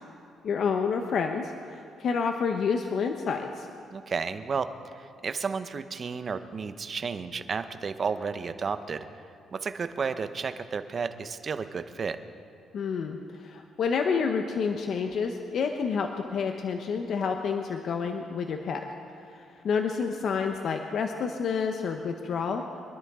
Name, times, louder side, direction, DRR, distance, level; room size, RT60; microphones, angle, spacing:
voice 1, 0.4-3.7 12.7-18.8 19.3-22.8, left 5 dB, 65° left, 5 dB, 0.9 m, -29 dB
voice 2, 3.9-9.1 9.5-12.2, right 5 dB, 45° right, 10 dB, 0.8 m, -32 dB
24.0 x 12.0 x 3.7 m, 2.6 s
cardioid pair, 90°, 0 cm